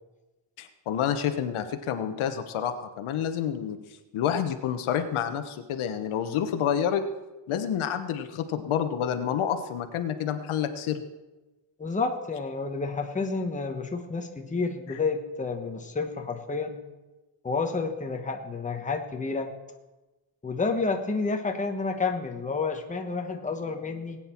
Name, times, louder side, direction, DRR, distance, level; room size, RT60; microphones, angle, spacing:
voice 1, 0.6-3.8 4.1-7.0 7.5-11.0, left 9 dB, 80° left, 8 dB, 1.2 m, -28 dB
voice 2, 11.8-16.8 17.4-19.5 20.4-24.2, left 4 dB, 15° left, 4 dB, 1.2 m, -30 dB
19.5 x 9.1 x 4.5 m, 1.1 s
cardioid pair, 155°, 49 cm